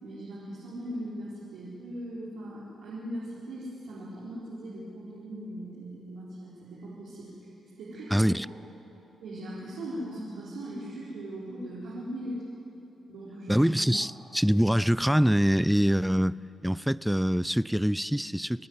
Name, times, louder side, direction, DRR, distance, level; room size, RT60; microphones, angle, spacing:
voice 1, 0.0-7.5 7.8-8.6 9.2-12.4 13.1-13.7 13.9-14.1, right 1 dB, 85° right, 4.4 m, -39 dB
voice 2, 8.1-8.5 13.5-16.4 16.6-18.7, equal, ahead, 0.4 m, -24 dB
29.5 x 10.0 x 9.5 m
supercardioid pair, 60°, 0 cm